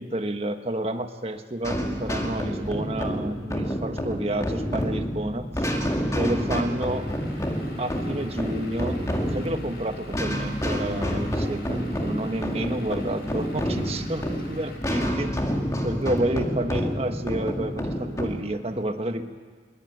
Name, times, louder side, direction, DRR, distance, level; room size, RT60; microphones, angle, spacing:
voice 1, 0.0-5.7 6.1-7.1 7.8-9.0 9.3-15.3 15.8-19.3, right 1 dB, 35° right, 7 dB, 1.3 m, -30 dB
sound 1, 1.6-18.4, equal, 15° left, 2.2 m, -28 dB
Vehicle / Engine, 6.8-14.8, left 1 dB, 60° left, 5.2 m, -46 dB
22.0 x 20.5 x 9.3 m, 1.5 s
head